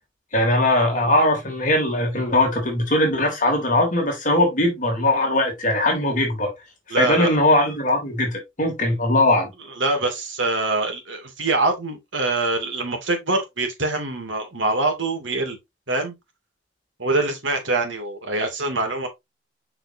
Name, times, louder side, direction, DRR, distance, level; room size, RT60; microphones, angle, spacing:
voice 1, 0.3-6.5 7.0-9.5, left 1 dB, 40° left, 3.0 m, -20 dB
voice 2, 6.9-7.4 9.8-15.6 15.9-16.1 17.0-19.1, right 2 dB, 75° right, 2.4 m, -24 dB
6.6 x 5.7 x 2.7 m
head